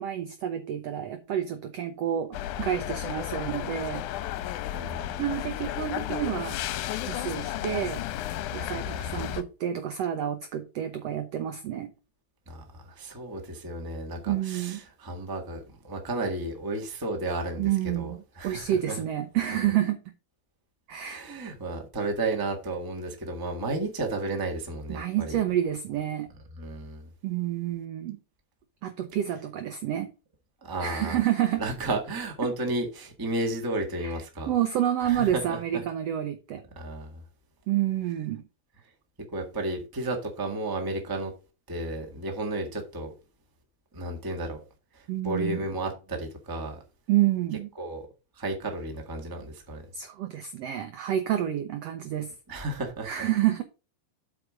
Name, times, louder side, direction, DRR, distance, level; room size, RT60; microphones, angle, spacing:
voice 1, 0.0-4.0 5.2-6.6 7.0-8.0 8.5-11.9 14.3-14.8 17.6-18.2 18.4-20.0 20.9-21.2 24.9-26.3 27.2-28.2 28.8-30.1 30.8-31.6 34.0-34.2 34.5-36.6 37.7-38.4 45.1-45.6 47.1-47.7 49.9-52.3 53.0-53.6, right 11 dB, 80° right, 1.4 m, -29 dB
sound 1, 2.3-9.4, left 12 dB, 80° left, 2.0 m, -33 dB
voice 2, 4.7-5.2 9.0-9.2 12.5-19.0 20.9-25.4 26.6-27.1 30.6-31.2 31.6-34.5 35.0-35.8 36.7-37.2 39.3-41.3 41.7-43.1 43.9-44.6 44.9-46.8 47.7-48.1 48.4-49.8 52.5-53.3, right 2 dB, 10° right, 0.9 m, -33 dB
8.2 x 5.0 x 5.0 m
omnidirectional pair, 3.8 m